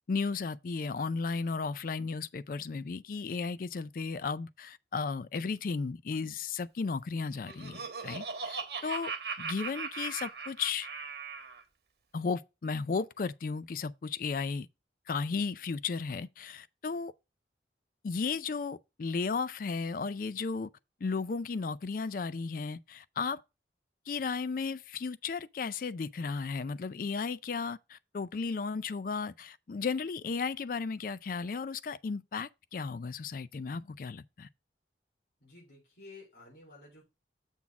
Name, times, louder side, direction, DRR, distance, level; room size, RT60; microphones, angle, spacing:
voice 1, 0.1-9.1 9.4-10.9 12.1-14.7 15.1-17.1 18.0-20.7 21.0-23.4 24.1-34.5, left 4 dB, 50° left, 0.4 m, -34 dB
Laughter, 7.2-11.6, right 5 dB, 60° right, 1.2 m, -39 dB
voice 2, 35.4-37.0, left 3 dB, 70° left, 4.1 m, -52 dB
7.2 x 4.0 x 5.8 m
head